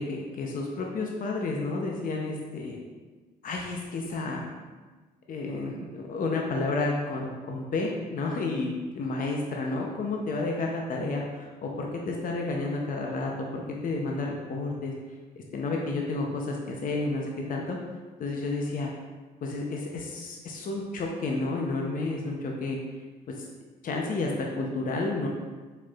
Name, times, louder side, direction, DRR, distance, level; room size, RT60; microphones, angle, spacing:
voice 1, 0.0-2.8 3.4-4.5 5.3-14.9 15.4-17.8 18.2-18.9 19.4-22.8 23.3-23.5 23.8-25.3, left 3 dB, 50° left, 0 dB, 0.7 m, -31 dB
4.6 x 4.4 x 2.4 m, 1.3 s
supercardioid pair, 70°, 18 cm